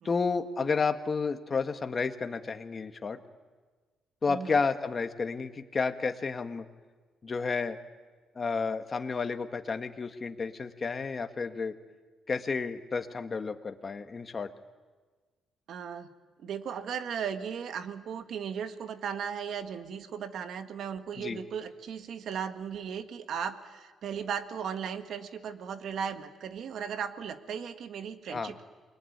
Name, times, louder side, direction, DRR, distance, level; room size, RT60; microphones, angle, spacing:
voice 1, 0.0-3.2 4.2-6.7 7.2-7.8 8.4-11.8 12.3-14.5 21.2-21.4 28.3-28.5, left 4 dB, 35° left, 7 dB, 1.8 m, -31 dB
voice 2, 15.7-16.1 16.4-28.6, right 7 dB, 70° right, 8 dB, 1.7 m, -36 dB
28.5 x 21.5 x 9.5 m, 1.4 s
cardioid pair, 90°, 0 cm